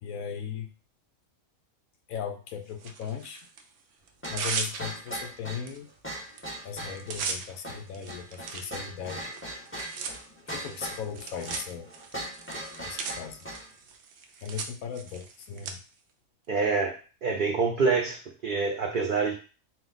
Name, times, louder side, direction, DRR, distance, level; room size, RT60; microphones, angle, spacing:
voice 1, 0.0-0.7 2.1-3.5 4.3-5.9 6.6-9.3 10.5-11.9 12.8-13.5 14.4-15.8, left 7 dB, 80° left, 7 dB, 1.1 m, -37 dB
Tearing, 2.8-3.6 4.1-5.2 5.7-5.8 6.1-6.4 6.7-15.7, right 5 dB, 65° right, 0.9 m, -38 dB
sound 1, 4.2-13.7, right 1 dB, 10° left, 0.9 m, -40 dB
voice 2, 16.5-19.3, right 4 dB, 90° right, 3 dB, 0.4 m, -26 dB
4.5 x 2.1 x 3.9 m, 0.36 s
omnidirectional pair, 1.5 m